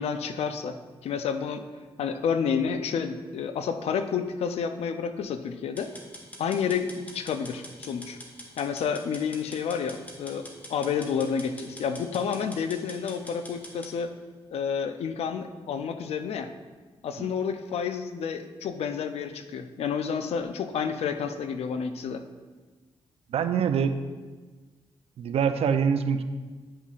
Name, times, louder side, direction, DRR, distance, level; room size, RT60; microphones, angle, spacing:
voice 1, 0.0-1.6 2.0-5.9 6.4-8.2 8.6-14.1 14.5-16.5 17.0-22.2, left 6 dB, 80° left, 8 dB, 0.5 m, -30 dB
sound 1, 5.8-13.9, equal, 15° left, 1.8 m, -45 dB
voice 2, 23.3-24.0 25.2-26.2, right 7 dB, 75° right, 10 dB, 0.5 m, -25 dB
10.0 x 5.5 x 2.5 m, 1.4 s
cardioid pair, 65°, 10 cm